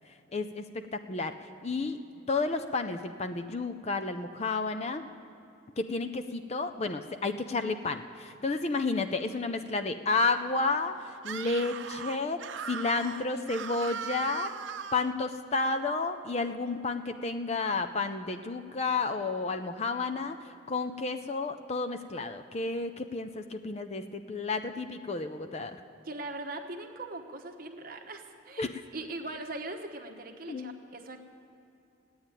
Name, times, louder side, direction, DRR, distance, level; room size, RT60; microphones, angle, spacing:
voice 1, 0.3-1.3 1.6-2.0 2.3-5.0 5.8-11.0 11.2-14.5 14.9-20.4 20.7-25.8 28.6-28.7 30.5-30.7, left 3 dB, 30° left, 7 dB, 0.5 m, -31 dB
Screaming, 11.2-15.1, right 7 dB, 65° right, 0.5 m, -39 dB
voice 2, 26.0-31.2, right 2 dB, 45° right, 5 dB, 1.0 m, -40 dB
14.5 x 9.5 x 9.0 m, 2.7 s
head